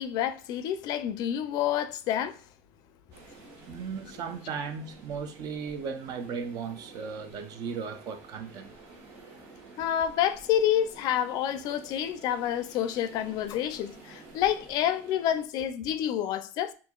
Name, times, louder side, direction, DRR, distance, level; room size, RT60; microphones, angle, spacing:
voice 1, 0.0-2.4 9.8-16.7, left 10 dB, 60° left, 0.4 m, -28 dB
sound 1, 3.1-15.5, right 3 dB, 85° right, 1.3 m, -51 dB
voice 2, 3.7-8.7, right 6 dB, 55° right, 0.6 m, -36 dB
4.4 x 2.6 x 2.3 m
cardioid pair, 125°, 8 cm